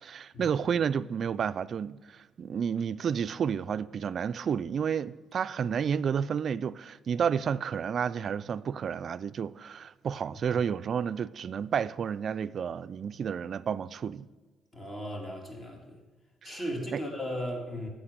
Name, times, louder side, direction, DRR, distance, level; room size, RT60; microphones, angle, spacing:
voice 1, 0.0-14.3 16.4-16.6 16.9-17.0, right 7 dB, 55° right, 0.3 m, -31 dB
voice 2, 14.7-16.0 16.4-17.9, equal, 35° left, 2.0 m, -36 dB
8.5 x 7.5 x 6.6 m
cardioid pair, 90°, 0 cm